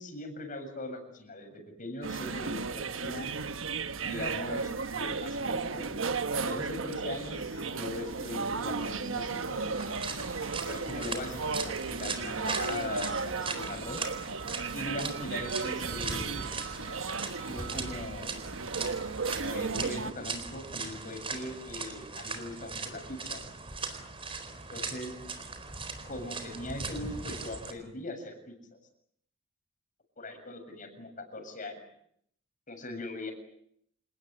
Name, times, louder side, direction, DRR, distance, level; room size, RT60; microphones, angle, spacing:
voice 1, 0.0-3.3 4.0-9.8 10.6-14.0 14.7-16.5 17.5-18.4 19.4-23.4 24.7-25.1 26.0-28.8 30.2-31.8 32.7-33.3, left 2 dB, 45° left, 7 dB, 7.4 m, -40 dB
sound 1, 2.0-20.1, right 4 dB, 85° right, 1.2 m, -35 dB
sound 2, 6.4-18.9, left 3 dB, 80° left, 2.4 m, -54 dB
sound 3, 9.7-27.7, right 4 dB, 30° right, 4.2 m, -39 dB
28.5 x 19.5 x 9.7 m, 0.71 s
head